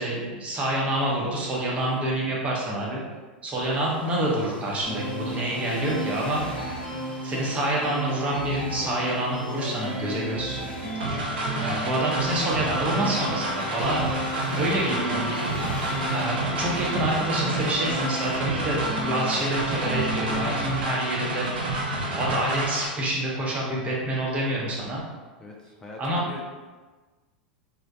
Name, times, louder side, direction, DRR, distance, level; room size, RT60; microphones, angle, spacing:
voice 1, 0.0-3.0 3.4-6.4 7.2-10.6 10.9-11.0 11.6-14.0 14.3-15.4 16.1-21.5 22.2-25.0 26.0-26.2, right 1 dB, 25° right, -4 dB, 0.8 m, -27 dB
sound 1, 3.6-18.4, left 1 dB, 75° left, 0.6 m, -44 dB
sound 2, 4.8-20.8, right 2 dB, 45° right, 1.0 m, -34 dB
sound 3, 11.0-22.9, right 1 dB, 70° right, 0.5 m, -29 dB
voice 2, 25.4-26.4, left 2 dB, 10° left, -1 dB, 0.4 m, -42 dB
3.2 x 2.2 x 2.6 m, 1.3 s
figure-of-eight pair, 90°, 5 cm